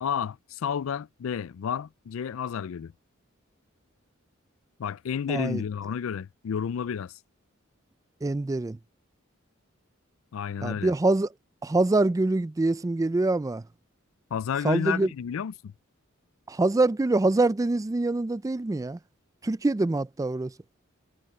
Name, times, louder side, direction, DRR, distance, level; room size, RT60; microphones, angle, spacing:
voice 1, 0.0-2.9 4.8-7.1 10.3-10.9 14.3-15.7, left 7 dB, 75° left, 0.4 m, -31 dB
voice 2, 5.3-5.6 8.2-8.8 10.6-11.3 11.6-13.6 14.6-15.1 16.5-19.0 19.4-20.5, right 2 dB, 15° right, 0.3 m, -25 dB
head